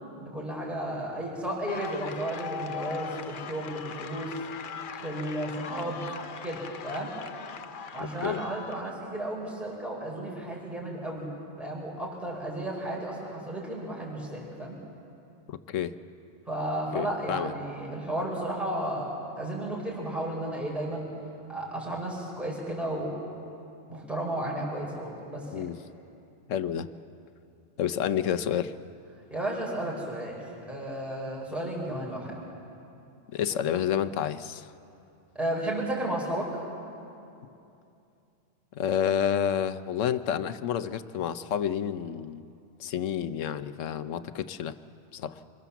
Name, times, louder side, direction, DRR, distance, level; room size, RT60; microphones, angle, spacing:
voice 1, 0.2-4.4 5.0-6.0 6.4-7.1 7.9-11.3 11.6-14.7 16.5-21.1 21.5-23.1 23.9-25.7 29.3-30.4 30.7-32.4 35.3-36.6, right 1 dB, ahead, -4 dB, 4.7 m, -33 dB
sound 1, 1.7-8.9, left 7 dB, 50° left, 0.8 m, -40 dB
voice 2, 8.0-8.4 15.5-15.9 16.9-17.5 25.5-25.8 26.5-26.9 27.8-28.7 33.3-34.7 38.7-42.5 42.8-44.7 45.1-45.4, left 9 dB, 85° left, 13 dB, 1.1 m, -29 dB
26.0 x 21.5 x 7.1 m, 2.7 s
omnidirectional pair, 1.3 m